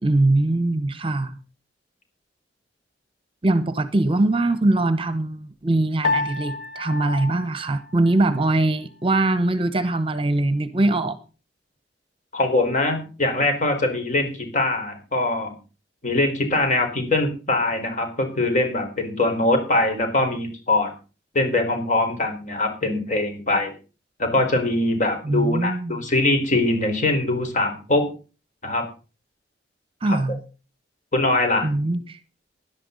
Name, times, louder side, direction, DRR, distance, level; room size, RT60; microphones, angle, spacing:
voice 1, 0.0-1.4 3.4-11.2 25.2-26.0 30.0-30.4 31.6-32.2, right 2 dB, 30° right, 1.0 m, -22 dB
Piano, 6.0-8.6, left 3 dB, 60° left, 1.4 m, -29 dB
voice 2, 12.3-15.5 16.0-20.9 21.3-23.7 24.2-28.1 28.6-28.9 30.1-30.2 31.1-31.7, left 2 dB, 45° left, 4.6 m, -22 dB
17.0 x 11.5 x 4.0 m
head